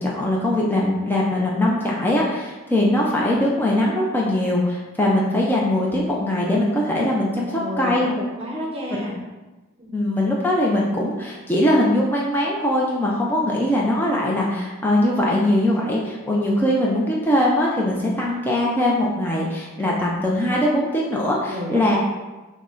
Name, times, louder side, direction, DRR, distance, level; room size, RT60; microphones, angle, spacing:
voice 1, 0.0-8.1 9.9-22.0, left 1 dB, 10° left, -4 dB, 0.4 m, -21 dB
voice 2, 7.5-8.1 8.4-9.2 9.8-9.9 21.5-22.0, left 1 dB, 25° right, -1 dB, 0.7 m, -31 dB
5.9 x 2.1 x 3.8 m, 1.2 s
head